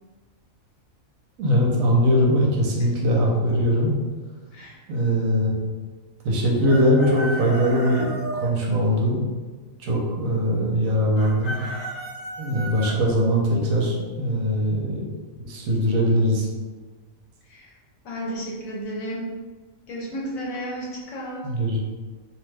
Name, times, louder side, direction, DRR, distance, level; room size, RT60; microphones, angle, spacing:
voice 1, 1.4-3.9 4.9-5.6 6.2-9.2 9.8-11.6 12.4-15.1 15.4-16.5 21.4-21.8, equal, 75° right, -2 dB, 1.0 m, -21 dB
Chicken rooster, 6.6-8.5 11.2-12.9, right 1 dB, 50° left, 0.9 m, -33 dB
voice 2, 18.0-19.3 19.9-21.5, right 1 dB, 75° left, -3 dB, 1.1 m, -32 dB
2.7 x 2.2 x 3.2 m, 1.3 s
omnidirectional pair, 1.5 m